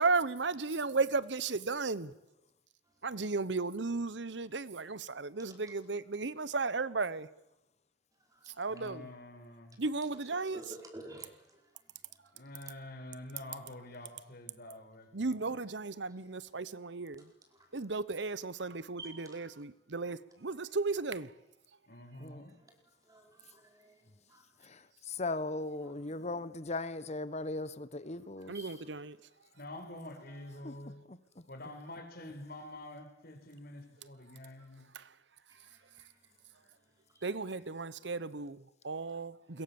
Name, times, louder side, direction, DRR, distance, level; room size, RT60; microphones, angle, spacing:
voice 1, 0.0-2.1 3.0-7.3 8.5-9.1 9.8-10.6 15.1-17.3 17.7-21.3 28.5-29.2 34.9-35.1 37.2-39.6, right 3 dB, 70° right, 1.0 m, -35 dB
voice 2, 8.7-9.8 12.3-15.4 21.9-22.5 29.5-31.0 31.5-34.9, left 1 dB, 55° left, 4.9 m, -47 dB
voice 3, 10.3-11.6 12.1-12.2 17.5-17.6 19.0-19.1 22.5-22.7 23.0-24.4 25.8-26.3 28.4-29.0 35.5-36.6 37.1-37.2, right 1 dB, 20° right, 4.9 m, -52 dB
voice 4, 24.6-28.5 30.6-30.7 31.1-31.4, left 2 dB, 40° left, 1.1 m, -38 dB
28.0 x 22.5 x 7.2 m
head